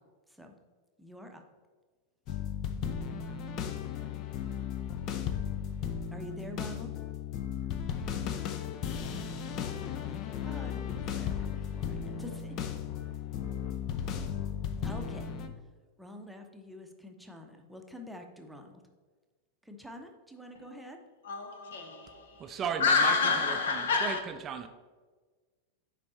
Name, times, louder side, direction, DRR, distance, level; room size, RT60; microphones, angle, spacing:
voice 1, 1.0-1.4 6.1-6.9 9.8-12.6 14.8-15.3 16.0-18.8 19.6-21.0, left 1 dB, ahead, 0.8 m, -47 dB
sound 1, 2.3-15.5, left 8 dB, 40° left, 0.6 m, -35 dB
voice 2, 21.2-24.2, left 4 dB, 60° left, 1.0 m, -28 dB
voice 3, 22.4-24.7, right 6 dB, 25° right, 0.5 m, -36 dB
9.7 x 4.1 x 4.2 m
figure-of-eight pair, 90°, 0 cm